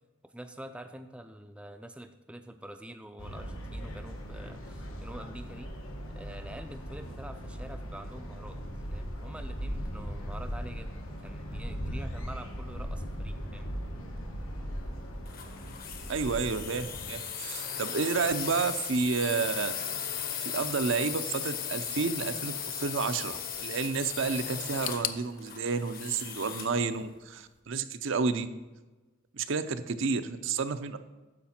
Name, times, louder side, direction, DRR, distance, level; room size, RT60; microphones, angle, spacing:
voice 1, 0.2-5.7 6.1-8.6 8.9-13.7, right 1 dB, 5° right, 7 dB, 0.4 m, -46 dB
sound 1, 3.2-17.1, equal, 90° left, 1.4 m, -39 dB
sound 2, 15.3-26.8, left 8 dB, 45° left, 0.9 m, -37 dB
voice 2, 16.1-19.8 20.4-28.5 29.3-31.0, right 4 dB, 70° right, 10 dB, 0.6 m, -30 dB
sound 3, 24.8-27.7 27.9-28.8 29.1-29.2 30.0-30.1, left 12 dB, 75° left, 0.5 m, -41 dB
9.9 x 7.1 x 4.3 m, 1.2 s
head